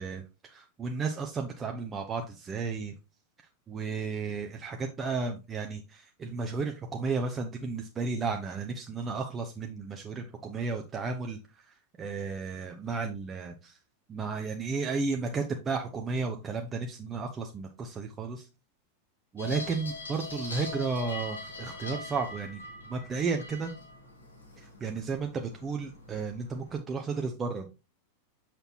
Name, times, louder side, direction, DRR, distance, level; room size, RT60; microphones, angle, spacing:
voice 1, 0.0-2.9 3.7-13.8 14.1-18.5 19.3-23.7 24.6-27.7, right 4 dB, 20° right, 4 dB, 0.7 m, -33 dB
sound 1, 19.4-26.8, left 3 dB, 80° left, 2.1 m, -42 dB
6.7 x 5.9 x 2.9 m, 0.28 s
figure-of-eight pair, 90°, 0 cm